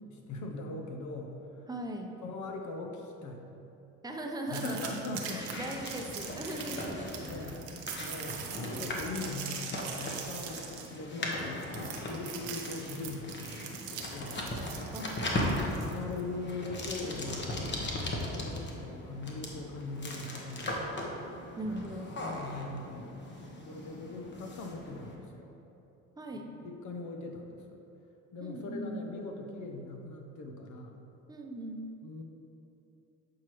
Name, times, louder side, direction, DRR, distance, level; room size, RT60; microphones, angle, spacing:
voice 1, 0.3-1.6 2.2-3.5 4.5-5.5 6.6-6.9 7.2-7.7 8.0-8.4 8.8-11.7 12.1-14.4 15.8-18.0 18.2-20.9 21.8-21.9 22.2-23.2 23.7-25.5 26.3-27.8 28.3-31.0 32.0-32.2, left 3 dB, 55° left, 2 dB, 0.7 m, -41 dB
voice 2, 1.7-2.1 4.0-4.8 5.2-7.5 14.9-15.6 21.6-22.0 26.2-26.5 28.4-29.0 31.3-31.9, right 1 dB, 10° right, 2 dB, 0.7 m, -39 dB
sound 1, 4.5-16.2, right 7 dB, 90° right, 0.8 m, -42 dB
sound 2, 5.4-25.2, left 1 dB, 30° left, 1.1 m, -38 dB
7.5 x 4.6 x 3.1 m, 2.9 s
supercardioid pair, 80°, 34 cm